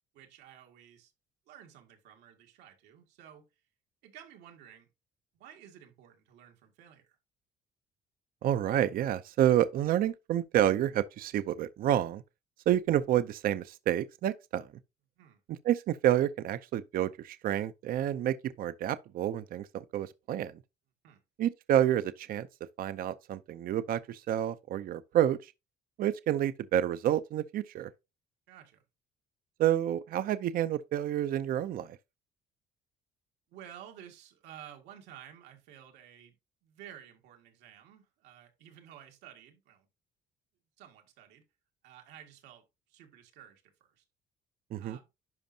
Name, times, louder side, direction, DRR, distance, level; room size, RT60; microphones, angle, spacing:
voice 1, 0.1-1.1 1.5-3.5 4.0-4.9 5.3-7.2 15.2-15.4 21.0-21.2 28.5-28.8 33.5-36.4 36.6-39.9 40.8-41.4 41.8-44.0 44.8-45.1, right 10 dB, 90° right, 2.0 m, -53 dB
voice 2, 8.4-12.2 12.7-14.7 15.5-20.6 21.4-22.5 22.8-25.5 26.0-27.9 29.6-32.0 44.7-45.0, right 11 dB, 60° right, 0.6 m, -29 dB
10.5 x 5.2 x 2.7 m
cardioid pair, 110°, 17 cm